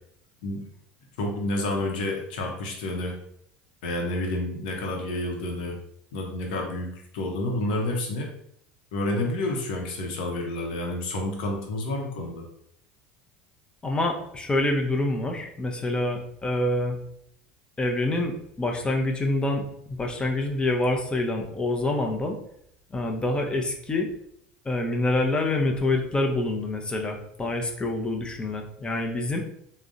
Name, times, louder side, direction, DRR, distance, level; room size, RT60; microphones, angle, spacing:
voice 1, 1.2-3.1 3.8-5.8 6.1-6.9 7.1-8.3 8.9-12.4, left 1 dB, 75° left, 1 dB, 0.8 m, -29 dB
voice 2, 13.8-17.0 17.8-22.4 22.9-24.1 24.6-29.4, left 2 dB, 20° left, 2 dB, 0.6 m, -26 dB
3.5 x 2.1 x 2.6 m, 0.71 s
hypercardioid pair, 85°, 5 cm